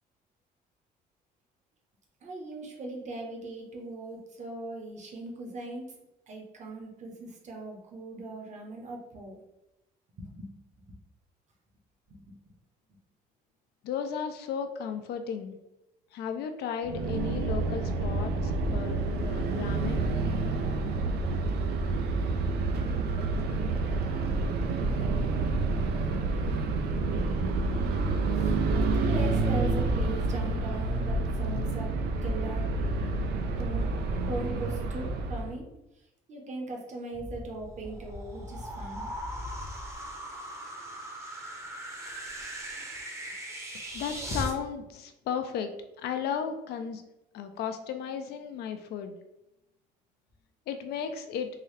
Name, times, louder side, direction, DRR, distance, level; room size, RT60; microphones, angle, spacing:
voice 1, 2.2-6.0 6.3-9.4 10.2-10.5 10.8-11.0 12.1-12.4 28.3-28.6 28.9-31.9 32.2-32.7 33.6-33.9 34.3-35.7 36.3-39.1, right 2 dB, 45° right, 0 dB, 1.1 m, -39 dB
voice 2, 13.8-15.6 16.1-20.1 43.9-45.7 46.0-47.0 47.3-49.2 50.7-51.5, left 7 dB, 75° left, 7 dB, 0.5 m, -34 dB
sound 1, 16.8-35.6, right 3 dB, 70° right, 0.5 m, -28 dB
sound 2, 37.1-44.5, equal, 15° right, 0.8 m, -39 dB
3.8 x 2.7 x 3.2 m, 0.93 s
cardioid pair, 110°, 17 cm